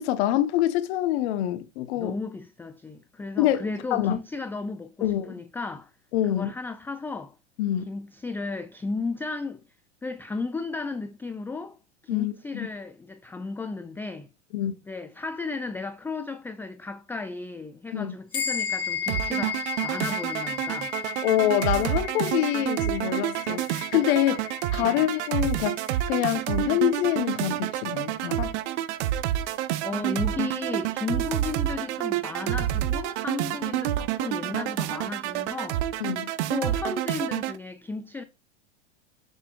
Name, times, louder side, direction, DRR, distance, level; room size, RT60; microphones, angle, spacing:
voice 1, 0.0-2.2 3.4-4.2 5.0-5.3 6.1-6.5 7.6-7.9 12.1-12.7 14.5-14.7 17.9-18.1 21.2-24.4 24.7-25.8 26.1-28.6 36.0-36.3, left 12 dB, 60° left, 1.0 m, -26 dB
voice 2, 2.0-5.9 6.3-7.3 7.9-9.6 10.0-11.8 12.0-14.3 14.9-20.9 24.8-25.0 29.8-35.8 36.5-38.2, left 3 dB, 5° left, 0.3 m, -34 dB
sound 1, 18.3-28.1, left 8 dB, 40° left, 2.3 m, -35 dB
sound 2, 19.1-37.6, right 13 dB, 65° right, 0.8 m, -28 dB
7.3 x 6.7 x 2.4 m
hypercardioid pair, 100°, 36 cm